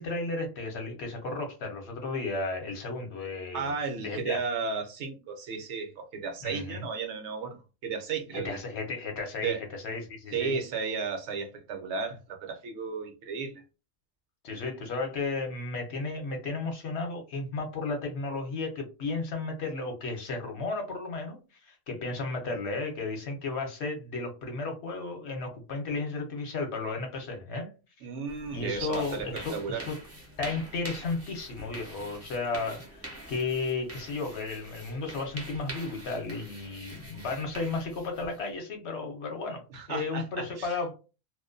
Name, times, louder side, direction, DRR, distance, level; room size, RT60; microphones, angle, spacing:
voice 1, 0.0-3.7 4.0-4.4 6.4-6.8 8.4-10.6 14.4-21.4 21.7-27.7 28.5-30.0 30.4-40.9, left 3 dB, 65° left, 0.9 m, -34 dB
voice 2, 3.5-8.6 9.4-9.6 10.3-13.6 28.0-29.3 29.5-29.9 39.7-40.8, right 5 dB, 70° right, 0.8 m, -34 dB
sound 1, 28.3-38.5, right 1 dB, 25° right, 0.3 m, -45 dB
2.4 x 2.1 x 2.5 m
omnidirectional pair, 1.3 m